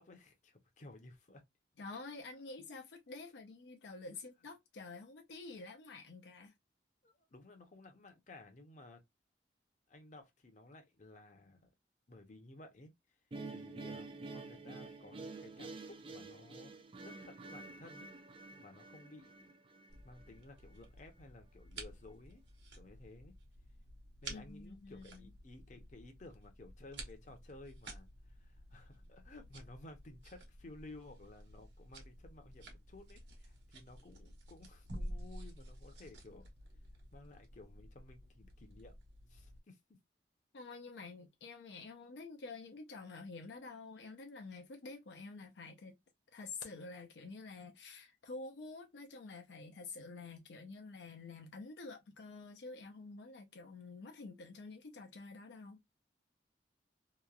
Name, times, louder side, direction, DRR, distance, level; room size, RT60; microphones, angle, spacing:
voice 1, 0.0-1.4 7.0-9.0 9.9-11.7 12.1-12.9 13.5-18.1 18.5-19.5 20.0-22.4 22.8-23.3 24.2-36.5 37.1-38.9 39.3-39.8, left 2 dB, 45° left, 0.7 m, -56 dB
voice 2, 1.8-6.5 24.3-25.3 40.5-46.0 46.3-55.9, left 3 dB, 80° left, 0.5 m, -49 dB
sound 1, 13.3-20.4, right 3 dB, 30° right, 0.4 m, -49 dB
sound 2, 19.9-39.6, right 1 dB, 80° right, 1.1 m, -52 dB
2.9 x 2.2 x 2.4 m
head